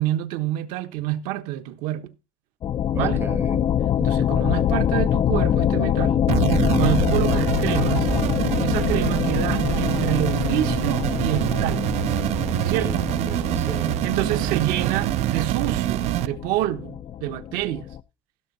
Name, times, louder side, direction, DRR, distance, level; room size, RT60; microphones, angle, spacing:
voice 1, 0.0-2.1 2.9-3.2 4.0-6.3 6.8-8.1 8.6-11.9 12.6-13.1 14.0-17.9, right 14 dB, 65° right, 1.1 m, -27 dB
sound 1, 2.6-18.0, left 10 dB, 30° left, 0.4 m, -25 dB
voice 2, 2.9-3.6 12.7-15.5, right 4 dB, 15° right, 0.8 m, -36 dB
sound 2, 6.3-16.3, right 15 dB, 45° right, 0.5 m, -25 dB
16.0 x 6.4 x 4.1 m
cardioid pair, 145°, 16 cm